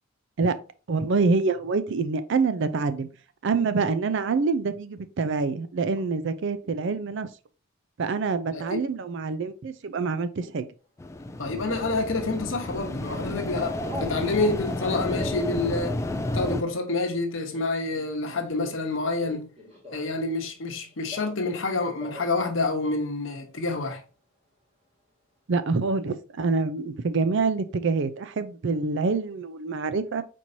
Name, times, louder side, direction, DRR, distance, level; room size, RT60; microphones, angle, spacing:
voice 1, 0.9-3.1 3.4-7.3 8.0-10.7 25.5-30.2, right 4 dB, 60° right, 0.4 m, -26 dB
sound 1, 11.0-16.6, left 2 dB, 15° left, 0.3 m, -31 dB
voice 2, 11.4-16.0 16.3-19.5 19.9-24.0, left 3 dB, 65° left, 1.0 m, -28 dB
Telephone, 13.8-14.2 14.7-20.3 20.5-21.6 21.9-22.4 22.7-22.8 23.0-23.6, left 1 dB, 30° right, 2.2 m, -44 dB
4.5 x 4.3 x 2.7 m
head